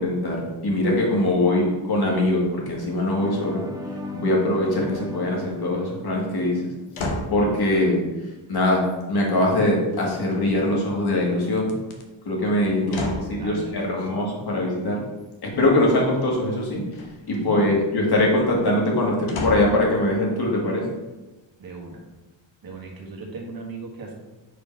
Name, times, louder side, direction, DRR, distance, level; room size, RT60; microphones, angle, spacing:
voice 1, 0.0-3.6 4.1-6.7 7.3-8.0 8.5-11.7 12.3-13.1 13.4-15.0 15.4-16.8 17.3-20.8, left 1 dB, 50° left, -2 dB, 1.8 m, -22 dB
sound 1, 3.2-7.0, left 2 dB, 10° right, 0.4 m, -36 dB
voice 2, 4.9-5.3 12.8-14.1 17.4-17.8 21.6-22.0 22.6-24.1, right 3 dB, 45° right, -1 dB, 1.4 m, -37 dB
sound 2, 6.9-7.4 9.9-10.6 11.6-12.0 12.9-13.4 16.9-17.4 19.3-19.8 20.5-20.6, left 2 dB, 85° left, 1.1 m, -31 dB
5.0 x 3.8 x 5.2 m, 1.1 s
wide cardioid pair, 140°, 47 cm